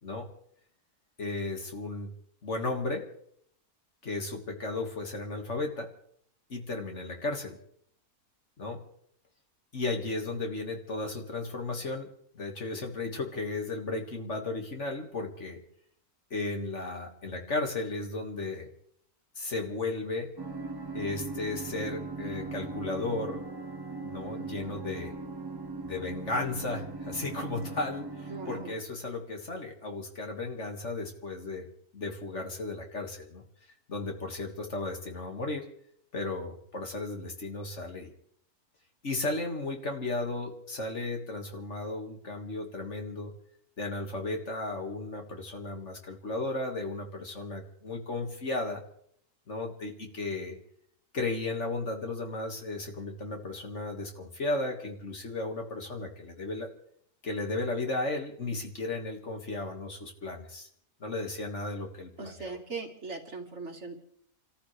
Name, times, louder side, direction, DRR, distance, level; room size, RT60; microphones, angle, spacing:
voice 1, 1.2-2.1 2.4-3.0 4.0-5.9 6.5-7.6 8.6-8.8 9.7-12.1 12.3-15.6 16.3-18.7 19.4-20.3 20.9-23.4 24.0-25.1 25.8-31.7 31.9-33.4 33.9-35.6 36.1-38.1 39.0-43.3 43.8-48.8 49.5-50.6 51.1-56.7 57.2-60.7 61.0-62.5, left 2 dB, 50° left, 3 dB, 2.2 m, -34 dB
sound 1, 20.4-28.7, right 3 dB, 20° right, 0.7 m, -39 dB
voice 2, 28.3-28.7 62.2-63.9, right 4 dB, 45° right, 3 dB, 1.9 m, -39 dB
29.5 x 14.0 x 3.3 m, 0.65 s
omnidirectional pair, 1.6 m